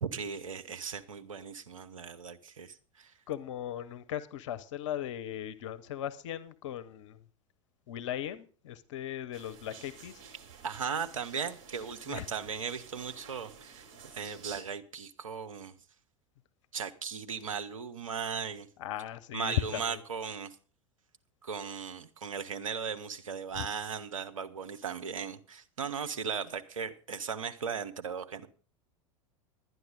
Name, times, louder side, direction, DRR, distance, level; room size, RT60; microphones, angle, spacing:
voice 1, 0.0-3.1 10.6-13.9 14.1-15.7 16.7-18.7 19.3-20.5 21.4-28.5, right 6 dB, 80° right, 1.0 m, -37 dB
voice 2, 3.3-7.2 7.9-10.2 12.1-12.3 18.8-20.0 23.6-23.7, left 11 dB, 65° left, 0.8 m, -37 dB
sound 1, 9.3-14.6, right 6 dB, 55° right, 3.7 m, -51 dB
12.0 x 9.5 x 5.0 m
figure-of-eight pair, 85°, 17 cm